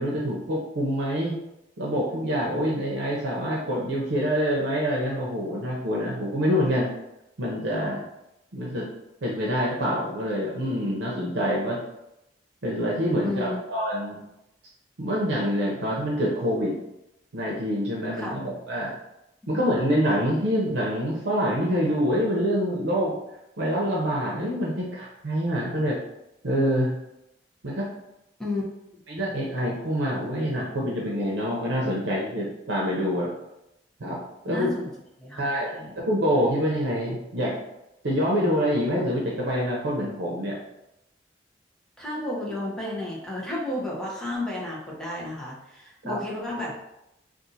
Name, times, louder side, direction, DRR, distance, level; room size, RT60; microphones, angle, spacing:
voice 1, 0.0-1.4 1.8-6.9 7.4-8.0 8.5-8.9 9.2-11.8 12.6-14.2 15.0-16.8 17.3-18.9 19.5-23.2 23.6-26.0 26.4-26.9 27.6-27.9 29.1-33.3 34.0-34.2 34.4-34.7 35.4-37.6 38.0-40.6 46.0-46.2, equal, 80° right, -4 dB, 0.7 m, -26 dB
voice 2, 13.2-13.6 18.2-18.3 19.5-19.6 28.4-28.6 34.5-34.9 35.2-35.4 35.7-35.9 42.0-46.8, left 1 dB, 5° left, -5 dB, 0.8 m, -32 dB
2.6 x 2.5 x 4.0 m, 0.88 s
head